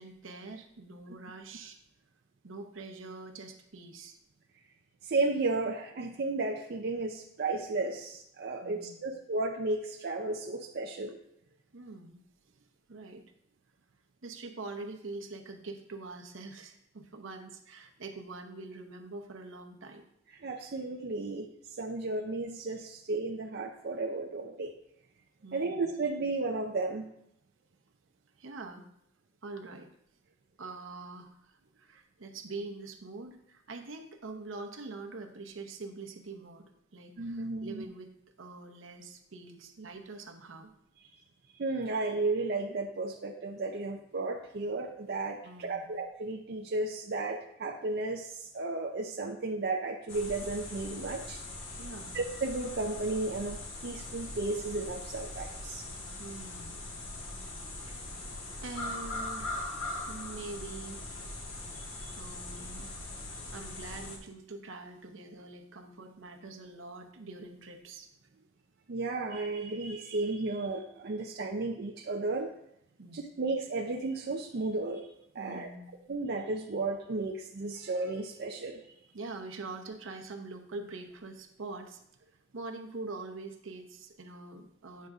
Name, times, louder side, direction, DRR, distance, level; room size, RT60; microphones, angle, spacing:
voice 1, 0.0-1.8 2.4-4.2 8.6-9.1 11.7-12.2 12.9-13.3 14.2-20.1 25.4-25.9 28.4-28.9 29.4-29.9 30.6-36.7 36.9-38.1 38.4-40.7 45.4-45.9 51.8-52.2 56.2-56.8 57.9-58.2 58.6-61.0 62.2-63.0 63.5-68.1 73.0-73.3 75.4-76.0 79.1-82.0 82.5-85.1, right 3 dB, 75° right, 4 dB, 0.8 m, -44 dB
voice 2, 5.0-11.2 20.4-24.7 25.5-27.1 37.2-37.9 41.6-51.4 52.1-55.9 61.7-62.2 68.9-72.5 73.1-75.1 75.3-75.7 76.1-78.8, right 3 dB, 55° right, 2 dB, 0.5 m, -34 dB
sound 1, 50.1-64.2, left 2 dB, 80° left, 1.4 m, -41 dB
9.2 x 6.5 x 2.4 m, 0.75 s
head